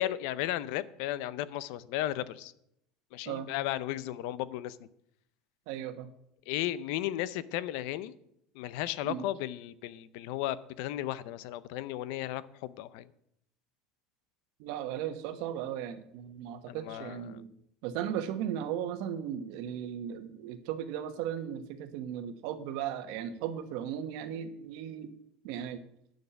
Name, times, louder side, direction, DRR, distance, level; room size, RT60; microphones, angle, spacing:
voice 1, 0.0-2.5 3.1-4.9 6.5-8.1 8.5-13.1 16.7-17.4, left 13 dB, 70° left, 0.6 m, -35 dB
voice 2, 5.7-6.1 9.0-9.3 14.6-17.5 17.8-25.1 25.4-25.8, right 10 dB, 65° right, 1.2 m, -36 dB
10.0 x 6.6 x 6.9 m
cardioid pair, 155°, 0 cm